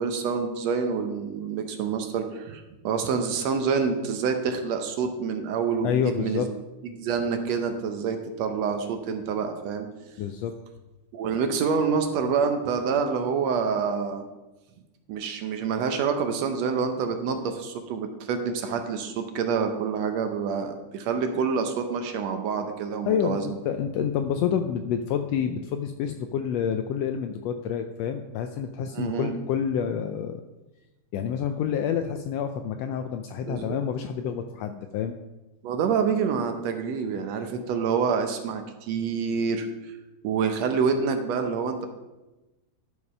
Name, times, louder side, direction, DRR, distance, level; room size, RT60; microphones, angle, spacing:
voice 1, 0.0-6.5 6.8-9.9 11.1-14.3 15.1-23.6 28.9-29.3 33.5-33.8 35.6-40.0 40.2-41.9, right 6 dB, 70° right, 6 dB, 1.8 m, -27 dB
voice 2, 5.8-6.5 10.2-10.5 23.0-30.4 31.1-35.2, left 8 dB, 80° left, 7 dB, 1.5 m, -28 dB
12.0 x 4.8 x 5.5 m, 1.1 s
omnidirectional pair, 3.4 m